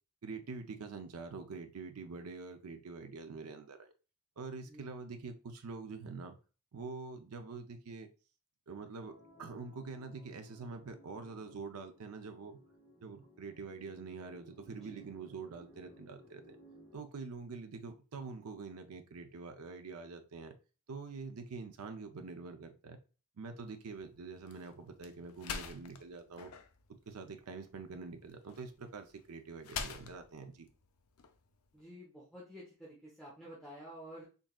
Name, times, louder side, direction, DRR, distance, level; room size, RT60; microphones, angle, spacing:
voice 1, 0.2-3.9 4.4-6.4 6.7-8.1 8.7-9.1 9.4-12.6 13.0-16.6 16.9-20.5 20.9-23.0 23.4-26.5 27.1-30.7, right 4 dB, 90° right, 0.5 m, -45 dB
sound 1, 9.0-17.0, left 1 dB, 15° right, 1.2 m, -60 dB
sound 2, 23.6-31.8, left 6 dB, 85° left, 0.5 m, -47 dB
voice 2, 31.7-34.2, equal, ahead, 0.9 m, -51 dB
3.9 x 3.6 x 2.3 m
head